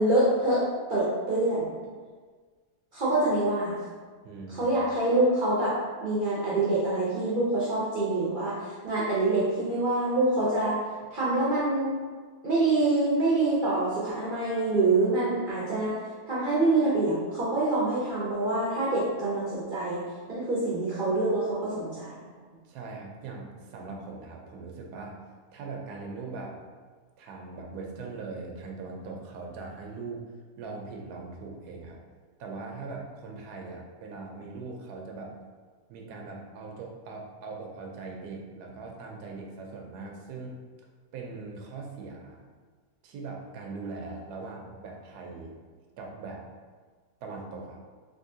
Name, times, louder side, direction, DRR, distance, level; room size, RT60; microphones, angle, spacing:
voice 1, 0.0-1.7 2.9-3.8 4.5-10.8 11.1-12.0 12.4-16.0 16.3-20.0 20.3-22.1, right 2 dB, 60° right, -7 dB, 0.5 m, -26 dB
voice 2, 4.2-4.8 22.6-25.2 25.5-26.6 27.2-30.2 30.6-32.0 32.4-35.3 35.9-40.6 41.1-42.5 43.0-45.6 46.0-46.4 47.2-47.8, right 3 dB, 85° right, 0 dB, 1.1 m, -40 dB
3.6 x 2.6 x 2.6 m, 1.5 s
omnidirectional pair, 1.7 m